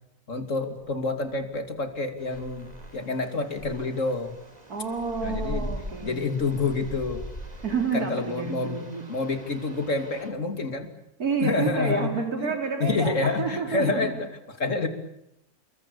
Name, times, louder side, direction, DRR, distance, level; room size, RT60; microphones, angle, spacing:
voice 1, 0.3-4.3 5.2-5.7 6.0-7.2 7.9-10.9 11.4-12.1 12.4-12.5 12.8-14.9, left 3 dB, 55° left, 7 dB, 3.2 m, -28 dB
sound 1, 2.2-10.3, right 1 dB, 25° right, 3.7 m, -51 dB
sound 2, 2.6-3.0 3.5-7.7, equal, 35° left, 6.6 m, -38 dB
voice 2, 4.7-6.3 7.6-9.0 11.2-14.1, right 5 dB, 80° right, 4 dB, 3.9 m, -29 dB
29.0 x 22.0 x 8.7 m, 0.82 s
omnidirectional pair, 1.6 m